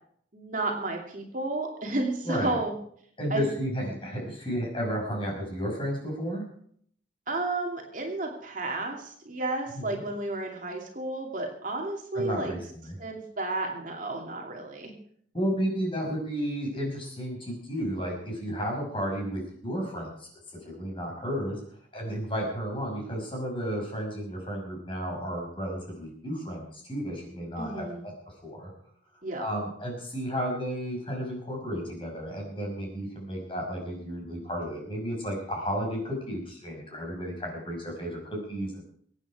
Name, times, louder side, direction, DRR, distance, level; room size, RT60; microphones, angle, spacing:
voice 1, 0.3-2.7 3.3-3.4 7.3-12.5 13.0-14.9 27.6-28.1 29.2-29.4, right 2 dB, 45° right, 1 dB, 2.7 m, -32 dB
voice 2, 2.2-2.6 3.2-6.4 9.7-10.0 12.1-13.0 15.3-20.3 20.6-21.6 21.9-28.1 28.4-28.7 29.4-38.9, equal, 30° left, 0 dB, 5.8 m, -32 dB
23.5 x 9.2 x 5.0 m, 0.63 s
head